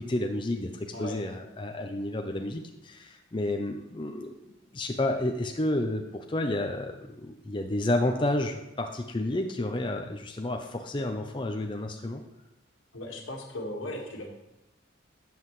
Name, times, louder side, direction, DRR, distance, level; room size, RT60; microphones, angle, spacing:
voice 1, 0.0-4.3 4.7-12.2, left 1 dB, 25° left, 4 dB, 0.6 m, -30 dB
voice 2, 12.9-14.3, left 1 dB, 85° left, 1 dB, 1.8 m, -37 dB
12.5 x 7.7 x 3.2 m, 0.91 s
head